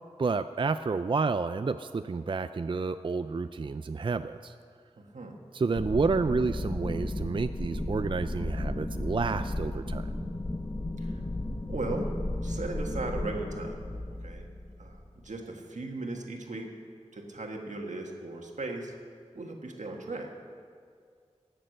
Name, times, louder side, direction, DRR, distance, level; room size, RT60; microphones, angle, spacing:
voice 1, 0.2-4.5 5.5-10.1, right 4 dB, 45° right, 11 dB, 0.4 m, -30 dB
voice 2, 5.0-5.4 11.0-11.2 11.7-12.1 12.4-13.8 14.2-14.4 14.8-16.7 17.1-18.9 19.3-20.3, right 2 dB, 85° right, 1 dB, 1.6 m, -37 dB
sound 1, 5.8-15.0, left 1 dB, 35° left, 1.2 m, -34 dB
18.5 x 6.7 x 6.5 m, 2.2 s
wide cardioid pair, 45°, 12 cm